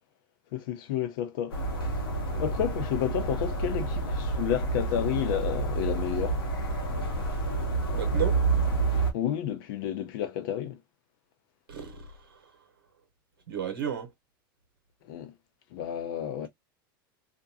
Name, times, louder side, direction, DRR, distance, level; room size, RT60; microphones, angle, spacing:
voice 1, 0.5-1.6 2.4-6.4 9.1-10.8 15.0-15.3 15.7-16.5, left 10 dB, 70° left, 0.7 m, -31 dB
sound 1, 1.5-9.1, right 3 dB, 85° left, 1.0 m, -29 dB
voice 2, 7.9-8.4 11.7-12.5 13.5-14.1, right 8 dB, 85° right, 0.8 m, -33 dB
2.5 x 2.2 x 2.7 m
hypercardioid pair, 95°, 12 cm